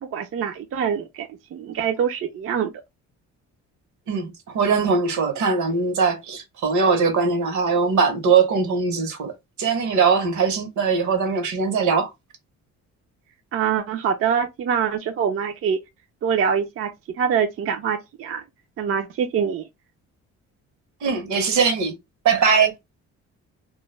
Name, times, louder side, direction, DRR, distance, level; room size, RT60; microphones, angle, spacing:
voice 1, 0.0-2.7 13.5-15.8 16.2-18.4 18.8-19.6, right 7 dB, 50° right, 0.4 m, -24 dB
voice 2, 4.1-9.3 9.6-12.1 21.0-21.9 22.2-22.7, right 5 dB, 75° right, 0.9 m, -21 dB
2.3 x 2.1 x 3.1 m
cardioid pair, 90°, 30 cm